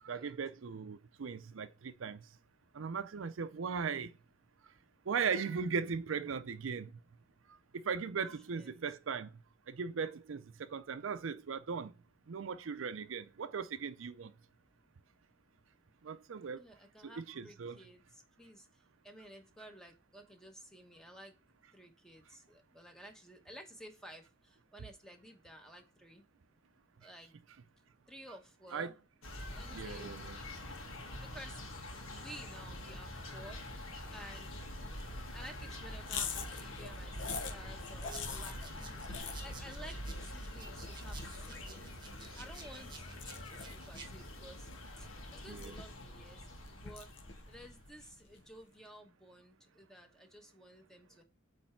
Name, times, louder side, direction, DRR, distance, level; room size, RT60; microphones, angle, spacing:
voice 1, 0.0-2.2 2.7-4.1 5.1-6.9 7.7-9.3 9.7-11.9 12.3-14.3 16.0-16.6 17.0-17.8 28.7-28.9 29.7-30.4 45.5-45.7, right 6 dB, 80° right, 0.5 m, -38 dB
voice 2, 16.5-21.3 21.7-26.2 27.0-27.3 28.1-29.0 29.5-30.1 31.2-31.6 32.1-33.6 34.1-34.6 35.3-43.1 43.5-44.7 45.0-47.1 47.5-51.2, right 1 dB, 5° left, 1.0 m, -54 dB
sound 1, 29.2-47.9, left 1 dB, 90° left, 1.6 m, -45 dB
sound 2, 36.0-48.5, left 6 dB, 65° left, 0.8 m, -46 dB
sound 3, 38.1-44.1, right 4 dB, 20° right, 1.1 m, -54 dB
8.5 x 3.3 x 4.5 m
head